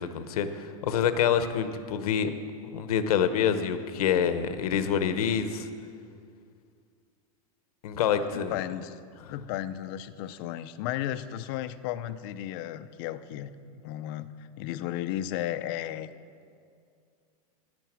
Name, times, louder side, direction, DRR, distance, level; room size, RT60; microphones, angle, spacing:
voice 1, 0.0-2.3 2.7-5.7 7.8-8.5, left 8 dB, 80° left, 10 dB, 0.9 m, -26 dB
voice 2, 8.2-9.0 9.3-16.1, left 12 dB, 40° left, 12 dB, 0.5 m, -34 dB
11.0 x 10.5 x 7.4 m, 2.3 s
supercardioid pair, 170°, 19 cm